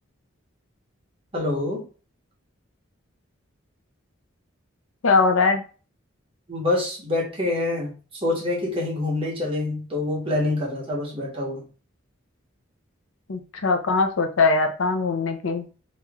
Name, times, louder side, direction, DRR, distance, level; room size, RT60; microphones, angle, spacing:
voice 1, 1.3-1.8 6.5-11.6, left 2 dB, 25° right, -3 dB, 1.2 m, -26 dB
voice 2, 5.0-5.6 13.3-15.6, left 4 dB, 80° left, 6 dB, 0.6 m, -21 dB
3.0 x 3.0 x 3.6 m, 0.36 s
head